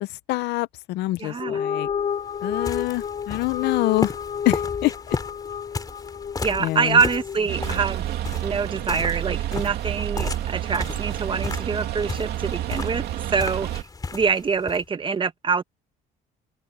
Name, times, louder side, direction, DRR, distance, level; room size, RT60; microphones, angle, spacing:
voice 1, 0.0-1.9 2.4-4.2 4.4-5.2 6.6-7.0, left 19 dB, 85° left, 0.7 m, -26 dB
voice 2, 1.2-1.6 6.4-8.0 8.4-13.0 13.3-13.8 14.1-15.6, right 5 dB, 30° right, 1.7 m, -25 dB
sound 1, 1.3-7.9, left 7 dB, 40° left, 3.1 m, -31 dB
sound 2, 1.9-14.8, left 4 dB, 20° left, 3.1 m, -35 dB
sound 3, 7.5-13.8, right 12 dB, 75° right, 2.7 m, -29 dB
open air
cardioid pair, 110°, 17 cm